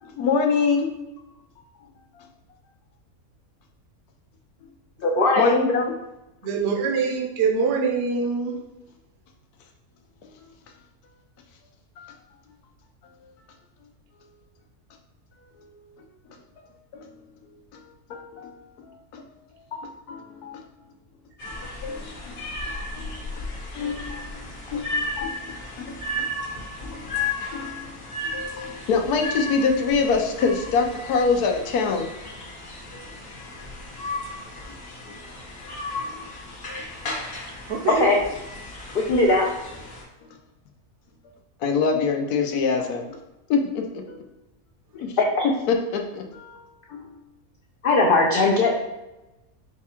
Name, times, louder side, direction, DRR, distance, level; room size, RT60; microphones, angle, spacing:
voice 1, 0.0-0.9 2.2-2.3 5.4-5.9 10.2-10.3 12.0-12.1 16.6-17.2 17.7-17.8 18.1-19.3 19.7-20.6 21.5-23.5 23.7-24.5 24.7-24.9 25.2-26.3 26.8-27.9 28.3-32.1 32.9-33.1 35.0-35.1 36.0-36.3 36.6-36.8 40.2-40.3 41.6-43.2 43.5-44.2 45.0-45.1 45.7-46.6 46.9-47.2, left 5 dB, 85° left, 3 dB, 1.2 m, -26 dB
voice 2, 5.0-5.6 37.9-38.2 38.9-39.4 45.4-45.5 47.8-48.7, left 2 dB, 70° left, -1 dB, 0.5 m, -19 dB
voice 3, 6.4-8.6 37.7-38.1, right 5 dB, 60° right, 1 dB, 0.8 m, -24 dB
sound 1, 21.4-40.0, left 2 dB, 45° left, 1.0 m, -34 dB
5.1 x 2.4 x 4.3 m, 0.99 s
omnidirectional pair, 1.6 m